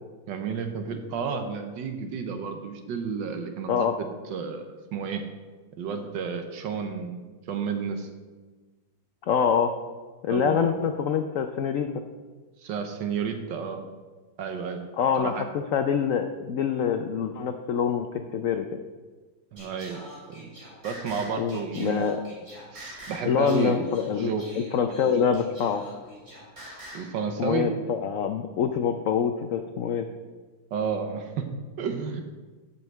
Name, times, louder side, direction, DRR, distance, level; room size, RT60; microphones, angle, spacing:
voice 1, 0.3-4.6 4.9-5.3 5.8-8.1 10.3-10.7 12.6-13.8 14.4-14.9 15.2-15.4 19.5-20.0 20.3-20.5 20.8-22.1 22.7-24.4 24.9-25.3 26.9-27.7 30.7-32.2, right 6 dB, 75° right, 6 dB, 1.5 m, -31 dB
voice 2, 9.3-9.7 10.2-11.9 15.0-18.6 21.4-22.2 23.2-25.8 27.4-30.1, left 7 dB, 80° left, 7 dB, 0.7 m, -25 dB
Singing, 19.6-27.1, right 1 dB, 30° right, 3.9 m, -44 dB
7.8 x 5.7 x 7.4 m, 1.3 s
omnidirectional pair, 2.0 m